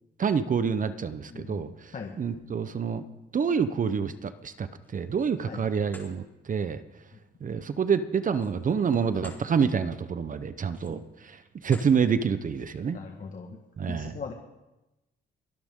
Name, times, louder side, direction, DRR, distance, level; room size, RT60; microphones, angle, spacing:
voice 1, 0.2-1.7 2.2-3.0 3.3-6.8 7.4-13.0 13.8-14.1, right 6 dB, 40° right, 12 dB, 0.9 m, -27 dB
voice 2, 1.3-2.1 5.5-5.7 7.1-7.2 12.9-13.6 13.9-14.3, left 5 dB, 40° left, 3 dB, 1.6 m, -40 dB
sound 1, 4.8-5.4 5.8-6.1 8.3-9.4 9.9-10.1 10.6-11.1 11.6-12.0, left 2 dB, 10° left, 4.5 m, -50 dB
24.0 x 11.5 x 3.8 m, 0.99 s
cardioid pair, 90°, 20 cm